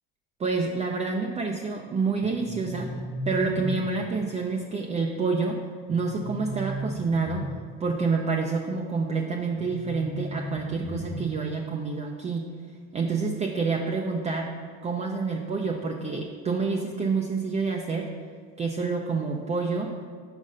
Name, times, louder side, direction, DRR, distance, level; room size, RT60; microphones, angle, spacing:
voice 1, 0.4-2.9 3.3-5.6 5.9-7.5 7.8-12.4 12.9-14.6 14.8-18.1 18.6-19.9, right 4 dB, 20° right, 1 dB, 0.5 m, -28 dB
sound 1, 2.2-4.2 5.9-7.8 9.6-11.5, right 1 dB, 30° left, 1.4 m, -35 dB
5.2 x 5.0 x 5.4 m, 2.1 s
supercardioid pair, 105°, 31 cm